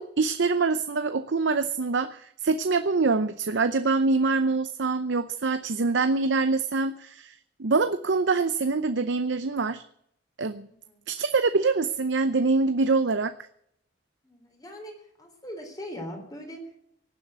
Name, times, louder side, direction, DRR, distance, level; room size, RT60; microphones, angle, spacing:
voice 1, 0.0-9.8 10.4-10.7 11.1-13.3, right 3 dB, 75° right, 11 dB, 0.7 m, -25 dB
voice 2, 10.6-11.0 14.2-14.9 15.2-16.8, equal, 20° left, 3 dB, 3.8 m, -40 dB
18.0 x 7.8 x 8.1 m, 0.73 s
head